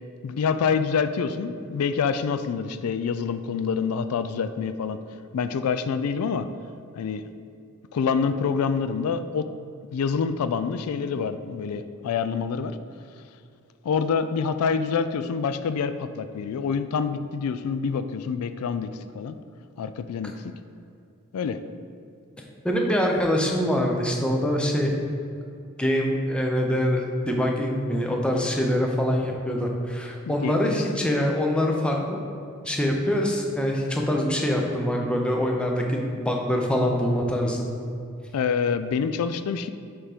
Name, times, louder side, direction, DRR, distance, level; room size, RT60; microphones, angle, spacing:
voice 1, 0.2-5.0 5.3-6.5 7.0-7.3 7.9-9.5 9.9-12.8 13.8-19.4 19.8-20.3 21.3-21.6 30.3-30.9 38.3-39.7, left 6 dB, 85° left, 10 dB, 0.3 m, -26 dB
voice 2, 22.6-24.9 25.8-32.2 32.6-37.7, equal, 5° left, 0 dB, 0.6 m, -24 dB
7.0 x 3.8 x 4.9 m, 2.5 s
head